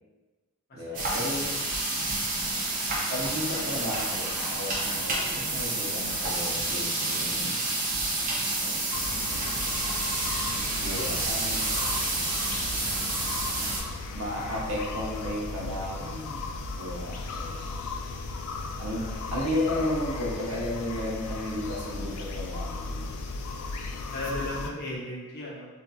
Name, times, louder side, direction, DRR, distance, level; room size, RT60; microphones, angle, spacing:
voice 1, 0.7-1.6 3.1-7.5 10.8-11.7 14.1-16.5 16.8-17.6 18.8-23.2, left 1 dB, 80° right, -3 dB, 0.7 m, -33 dB
sound 1, 0.9-13.8, right 2 dB, 40° right, 0.5 m, -29 dB
voice 2, 8.5-8.9 10.9-12.0 18.9-19.2 24.1-25.7, left 1 dB, 45° left, -5 dB, 0.6 m, -38 dB
sound 2, 8.9-24.7, left 3 dB, 85° left, 0.3 m, -36 dB
2.6 x 2.3 x 2.3 m, 1.2 s
head